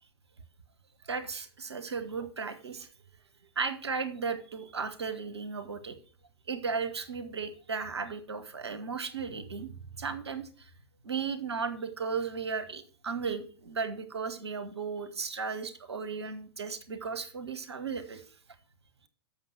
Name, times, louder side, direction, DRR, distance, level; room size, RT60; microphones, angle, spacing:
voice 1, 1.0-2.9 3.5-5.9 6.5-10.7 11.0-18.2, right 5 dB, 80° right, 10 dB, 1.4 m, -35 dB
7.4 x 6.5 x 7.6 m, 0.39 s
figure-of-eight pair, 100°, 14 cm